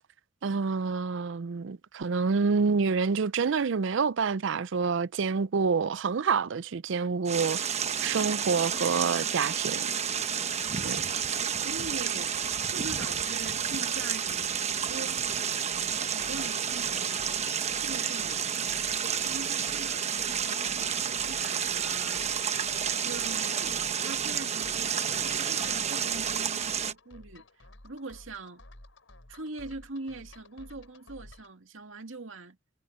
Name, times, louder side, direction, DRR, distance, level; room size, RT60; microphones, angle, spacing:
voice 1, 0.4-7.7 8.0-9.9 10.8-11.0, right 5 dB, 70° right, 0.5 m, -27 dB
sound 1, 7.3-26.9, right 7 dB, 35° right, 1.0 m, -30 dB
voice 2, 10.6-11.1 11.6-12.4 12.7-15.3 16.1-17.3 17.8-18.8 19.2-22.3 23.0-28.6 29.3-32.6, right 2 dB, 90° right, 2.1 m, -42 dB
sound 2, 15.7-31.6, left 2 dB, 90° left, 4.9 m, -54 dB
head